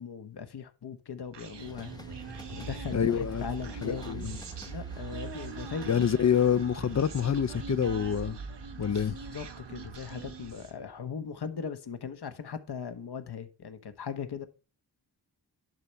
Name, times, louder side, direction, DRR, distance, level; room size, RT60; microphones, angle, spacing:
voice 1, 0.0-1.9 2.5-4.3 4.7-6.1 8.9-14.5, left 6 dB, 70° left, 1.4 m, -39 dB
Human voice, 1.3-10.8, right 5 dB, 85° right, 1.6 m, -41 dB
sound 1, 1.6-7.4, left 2 dB, 10° left, 0.9 m, -53 dB
voice 2, 2.9-3.5 3.8-4.4 5.9-8.4 8.8-9.1, left 8 dB, 40° left, 0.5 m, -27 dB
11.0 x 5.5 x 4.6 m
wide cardioid pair, 75°, 41 cm